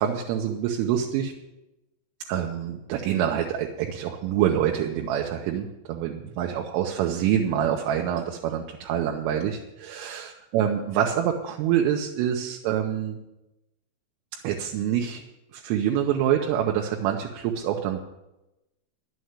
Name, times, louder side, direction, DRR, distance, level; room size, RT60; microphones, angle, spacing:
voice 1, 0.0-1.3 2.3-13.2 14.4-15.2 15.5-18.0, right 9 dB, 80° right, 1 dB, 3.5 m, -26 dB
11.0 x 7.8 x 9.4 m, 0.95 s
omnidirectional pair, 5.8 m